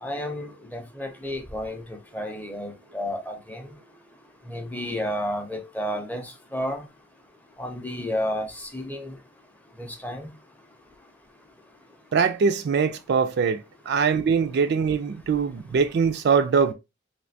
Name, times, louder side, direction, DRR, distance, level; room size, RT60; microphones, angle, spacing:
voice 1, 0.0-3.6 4.5-6.8 7.6-9.2 9.8-10.3, equal, 10° left, 0.5 m, -31 dB
voice 2, 12.1-13.6 13.9-16.7, right 6 dB, 55° right, 0.3 m, -22 dB
3.3 x 2.6 x 2.6 m
head